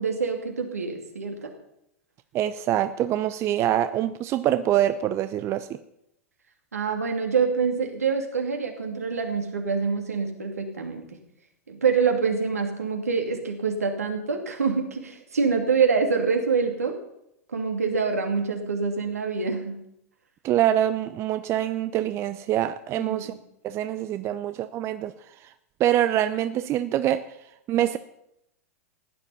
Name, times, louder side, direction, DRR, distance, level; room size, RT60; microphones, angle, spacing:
voice 1, 0.0-1.5 6.7-11.0 11.7-16.9 17.5-19.8 22.9-23.3, right 5 dB, 85° right, 3 dB, 2.7 m, -26 dB
voice 2, 2.3-5.8 20.4-23.3 23.6-25.1 25.4-25.5 25.8-27.2 27.7-28.0, right 12 dB, 35° right, 12 dB, 0.7 m, -25 dB
15.5 x 9.9 x 5.7 m, 0.81 s
hypercardioid pair, 100°, 8 cm